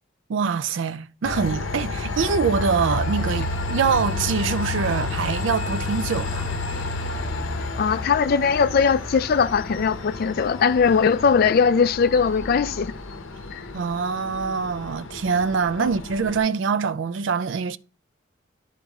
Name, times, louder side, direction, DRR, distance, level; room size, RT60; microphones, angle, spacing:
voice 1, 0.3-6.5 13.7-17.8, right 5 dB, 65° right, 0.4 m, -24 dB
Train, 1.2-16.4, left 2 dB, 70° left, 0.8 m, -30 dB
voice 2, 7.8-12.9 13.5-13.6 15.8-15.9, left 6 dB, 45° left, 0.3 m, -20 dB
11.0 x 4.1 x 3.5 m
head